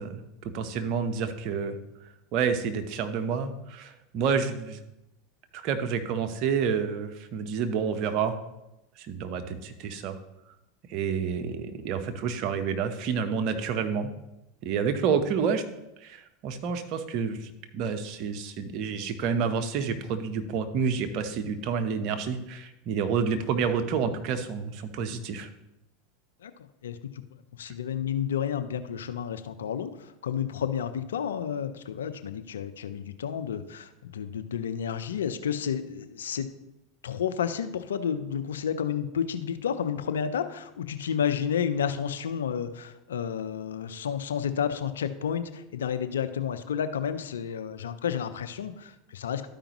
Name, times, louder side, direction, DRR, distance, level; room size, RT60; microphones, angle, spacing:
voice 1, 0.0-1.8 2.3-4.8 5.5-8.3 9.0-10.2 10.9-14.1 14.6-15.6 16.0-25.5, right 6 dB, 55° right, 7 dB, 0.9 m, -29 dB
voice 2, 27.5-36.5 37.0-49.5, left 8 dB, 85° left, 10 dB, 0.5 m, -31 dB
12.5 x 5.0 x 3.0 m, 0.92 s
hypercardioid pair, 90°, 0 cm